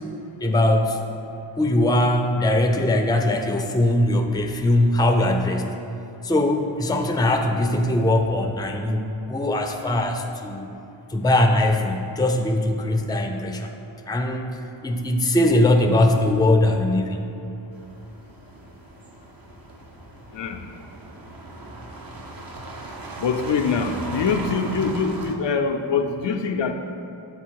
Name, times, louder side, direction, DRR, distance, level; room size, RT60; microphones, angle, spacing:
voice 1, 0.4-1.0 1.6-5.8 6.2-10.7 11.1-13.7 14.1-14.6 14.8-17.3, left 1 dB, 10° left, 4 dB, 0.5 m, -21 dB
sound 1, 17.7-25.4, right 2 dB, 45° right, 0.8 m, -37 dB
voice 2, 20.3-20.7 23.2-26.7, left 5 dB, 60° left, 5 dB, 0.5 m, -24 dB
7.1 x 4.0 x 4.6 m, 2.8 s
cardioid pair, 45°, 49 cm